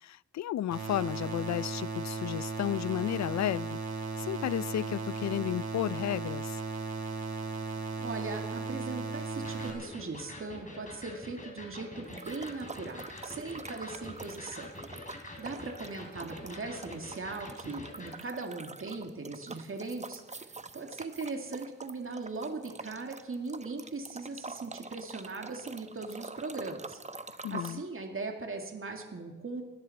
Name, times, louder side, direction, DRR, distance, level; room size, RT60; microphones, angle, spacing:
voice 1, 0.0-3.8 4.2-6.6 27.4-27.8, left 12 dB, 60° left, 21 dB, 0.5 m, -33 dB
sound 1, 0.7-9.7, right 4 dB, 65° right, 3.5 m, -36 dB
voice 2, 8.0-14.7 15.4-27.0 27.5-29.6, right 3 dB, 40° right, 3 dB, 2.3 m, -39 dB
Electric guitar, 9.4-18.2, left 1 dB, 25° left, 3.9 m, -46 dB
sound 2, 12.0-27.7, right 3 dB, 20° right, 0.8 m, -45 dB
29.5 x 10.5 x 4.3 m, 1.2 s
cardioid pair, 50°, 31 cm